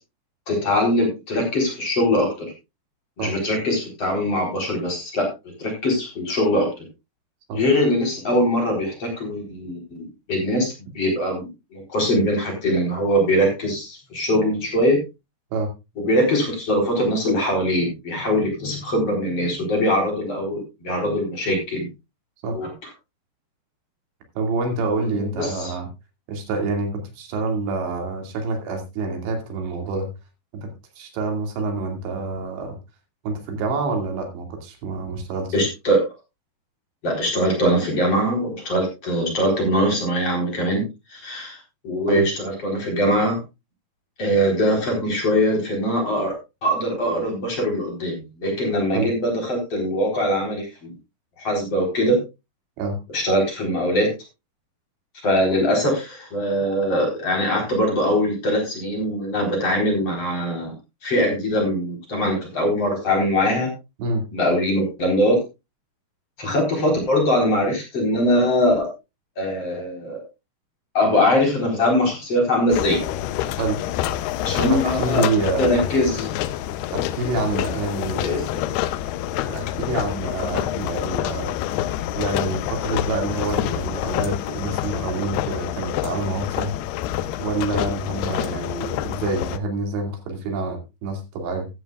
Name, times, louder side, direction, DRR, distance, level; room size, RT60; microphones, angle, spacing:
voice 1, 0.5-2.5 3.2-6.7 7.5-15.0 16.0-21.9 22.4-22.7 25.1-25.7 35.5-36.1 37.0-40.8 41.1-41.6 41.8-43.4 44.2-46.3 46.6-50.9 51.4-52.2 53.1-54.1 55.2-60.7 61.0-63.7 64.3-65.4 66.4-68.9 69.4-70.2 70.9-73.0 74.4-75.3 75.6-76.3 78.2-78.4, equal, 35° left, 1 dB, 4.7 m, -22 dB
voice 2, 24.4-25.9 26.3-30.1 30.5-30.7 31.0-32.8 33.2-35.5 42.1-42.3 48.9-49.1 52.8-53.0 64.0-64.3 73.6-73.8 74.6-75.8 76.9-78.4 79.5-81.6 82.2-86.7 87.4-91.7, right 3 dB, 80° right, 3 dB, 4.6 m, -27 dB
sound 1, 72.7-89.6, left 12 dB, 80° left, 2.5 m, -27 dB
14.0 x 13.0 x 2.4 m, 0.25 s
omnidirectional pair, 5.1 m